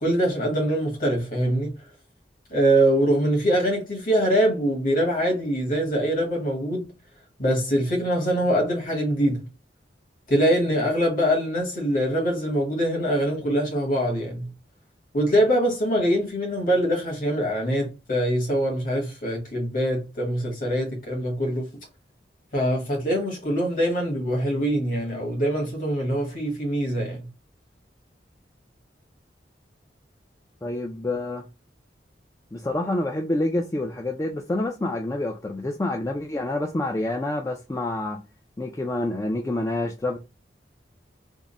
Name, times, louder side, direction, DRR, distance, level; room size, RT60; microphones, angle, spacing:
voice 1, 0.0-1.7 2.5-6.9 7.4-9.5 10.3-14.5 15.1-21.7 22.5-27.3, equal, 50° left, 1.5 m, -23 dB
voice 2, 30.6-31.5 32.5-38.2 38.6-40.2, left 2 dB, 15° left, 0.3 m, -27 dB
3.6 x 2.0 x 3.9 m
head